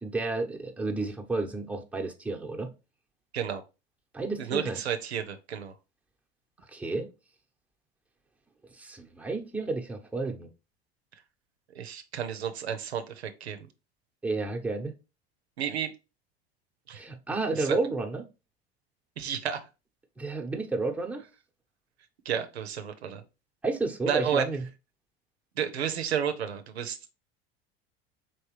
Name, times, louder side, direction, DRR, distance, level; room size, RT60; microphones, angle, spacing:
voice 1, 0.0-2.7 4.1-4.8 6.7-7.1 8.7-10.5 14.2-15.0 16.9-18.3 20.2-21.2 23.6-24.7, right 3 dB, 5° right, 0.8 m, -31 dB
voice 2, 4.4-5.7 11.1-11.2 11.7-13.7 15.6-15.9 16.9-17.0 17.5-17.8 19.2-19.7 22.2-23.2 24.1-24.4 25.6-27.0, right 8 dB, 90° right, 0.6 m, -31 dB
4.3 x 3.2 x 3.0 m
hypercardioid pair, 80°, 31 cm